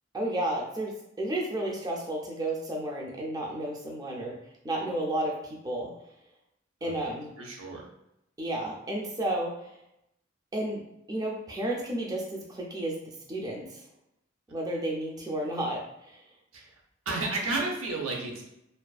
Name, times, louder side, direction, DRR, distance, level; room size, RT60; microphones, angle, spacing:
voice 1, 0.1-4.4 4.6-5.4 5.6-5.9 6.8-7.3 8.4-9.6 10.5-10.8 11.1-13.8 14.5-16.2, right 1 dB, 20° right, -2 dB, 0.4 m, -32 dB
voice 2, 7.4-7.8 16.5-16.7 17.1-18.4, right 2 dB, 85° right, 0 dB, 0.6 m, -32 dB
2.4 x 2.3 x 2.3 m, 0.83 s
head